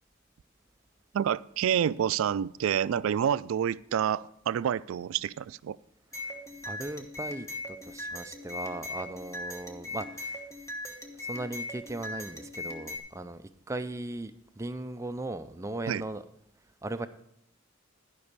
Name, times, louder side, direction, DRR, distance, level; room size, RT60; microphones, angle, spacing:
voice 1, 1.1-5.8 15.9-16.0, right 9 dB, 90° right, 18 dB, 0.3 m, -28 dB
sound 1, 6.1-13.0, left 2 dB, 15° left, 1.2 m, -39 dB
voice 2, 6.7-10.5 11.2-16.2 16.8-17.1, right 2 dB, 15° right, 11 dB, 0.4 m, -38 dB
12.5 x 5.4 x 6.6 m, 0.74 s
head